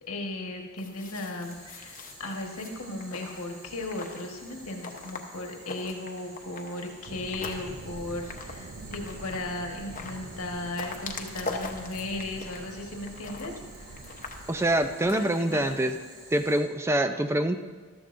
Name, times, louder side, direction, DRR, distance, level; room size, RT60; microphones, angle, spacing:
voice 1, 0.0-13.5 15.0-15.8, left 2 dB, 75° left, 2 dB, 1.4 m, -36 dB
sound 1, 0.8-15.8, left 3 dB, 35° left, 0.9 m, -43 dB
Boiling, 1.4-16.6, right 2 dB, 65° right, 3.9 m, -51 dB
sound 2, 7.0-15.1, right 3 dB, 85° right, 0.7 m, -45 dB
voice 2, 14.5-16.0 16.3-17.6, right 1 dB, 10° right, 8 dB, 0.4 m, -25 dB
14.0 x 12.0 x 2.6 m, 1.4 s
head